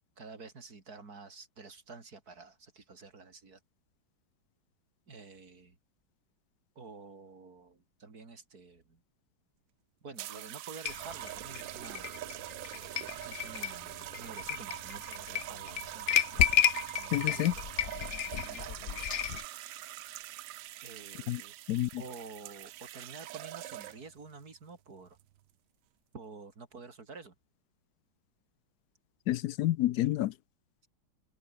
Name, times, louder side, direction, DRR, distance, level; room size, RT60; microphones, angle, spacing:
voice 1, 0.2-3.6 5.1-5.8 6.8-9.0 10.0-12.1 13.2-16.5 17.0-19.1 20.8-21.5 22.0-25.2 26.1-27.4, right 4 dB, 45° right, 3.4 m, -50 dB
sound 1, 10.2-24.2 25.1-25.4, right 15 dB, 75° right, 1.3 m, -43 dB
sound 2, 10.9-19.5, left 10 dB, 90° left, 0.6 m, -32 dB
voice 2, 17.1-17.5 21.3-21.4 21.7-22.0 29.3-30.3, left 14 dB, 75° left, 0.9 m, -29 dB
omnidirectional pair, 2.2 m